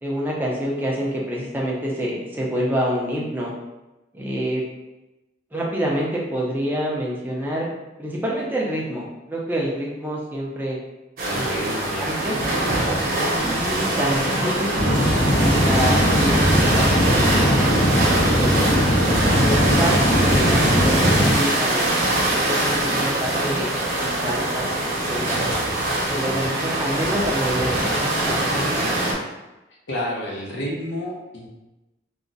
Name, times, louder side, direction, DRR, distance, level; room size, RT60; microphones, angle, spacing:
voice 1, 0.0-3.5 4.1-4.6 5.5-7.7 8.0-10.8 11.3-11.5 12.0-12.4 13.5-14.7 15.3-18.8 19.3-23.7 24.0-25.4 26.1-28.6, equal, 10° right, -4 dB, 0.5 m, -27 dB
voice 2, 11.2-12.1 29.9-31.5, equal, 80° left, -3 dB, 0.7 m, -29 dB
sound 1, 11.2-29.1, right 1 dB, 50° right, 0.8 m, -23 dB
sound 2, 14.8-21.3, equal, 45° left, 0.7 m, -20 dB
2.4 x 2.0 x 3.8 m, 1.0 s
head